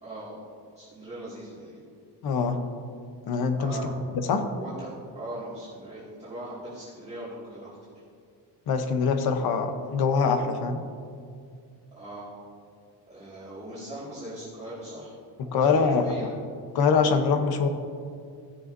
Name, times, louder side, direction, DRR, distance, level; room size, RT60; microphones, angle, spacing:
voice 1, 0.0-0.4 0.8-1.8 3.6-4.0 4.3-4.9 5.1-7.7 11.9-12.3 13.1-15.2 15.5-16.4, right 1 dB, 15° right, -11 dB, 2.1 m, -40 dB
voice 2, 2.2-2.6 3.3-4.5 8.7-10.8 15.4-16.0 16.7-17.7, left 5 dB, 55° left, 7 dB, 0.9 m, -24 dB
16.0 x 6.9 x 2.6 m, 2.3 s
cardioid pair, 165°, 44 cm